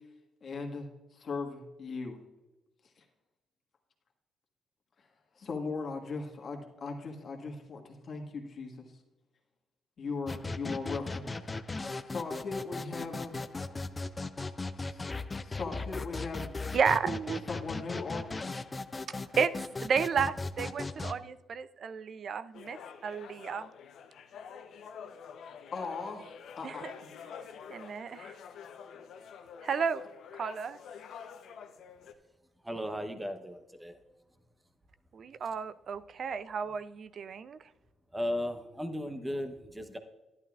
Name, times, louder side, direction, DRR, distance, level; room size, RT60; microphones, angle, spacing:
voice 1, 0.4-2.2 3.0-3.1 5.4-8.9 10.0-11.3 12.1-13.3 14.4-14.5 14.8-15.1 15.4-16.5 17.5-18.4 25.7-26.8, left 4 dB, 50° left, 2 dB, 1.6 m, -38 dB
sound 1, 10.3-21.1, left 3 dB, 25° left, 0.4 m, -38 dB
voice 2, 16.7-17.5 19.3-19.6 19.8-23.7 26.6-26.9 27.7-28.4 29.6-30.0 30.3-30.8 35.1-37.6, right 6 dB, 55° right, 15 dB, 0.4 m, -32 dB
sound 2, 22.5-32.1, left 7 dB, 70° left, 0.7 m, -48 dB
voice 3, 32.6-34.0 38.1-40.0, equal, 10° right, 7 dB, 0.9 m, -36 dB
11.5 x 11.0 x 2.4 m, 1.1 s
cardioid pair, 90°, 0 cm